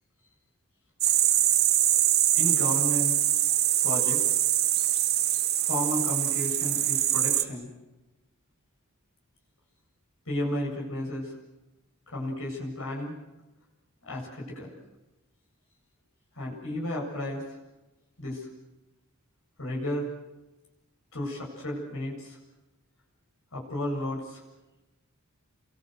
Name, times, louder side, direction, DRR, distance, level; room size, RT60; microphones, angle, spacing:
sound 1, 1.0-7.4, right 12 dB, 50° right, 1.8 m, -24 dB
voice 1, 2.3-3.2 3.8-4.4 5.6-7.7 10.3-11.3 12.1-13.2 14.0-14.8 16.3-17.4 18.2-18.5 19.6-20.1 21.1-22.4 23.5-24.4, left 1 dB, 70° left, -2 dB, 8.0 m, -33 dB
30.0 x 23.5 x 8.1 m, 1.1 s
head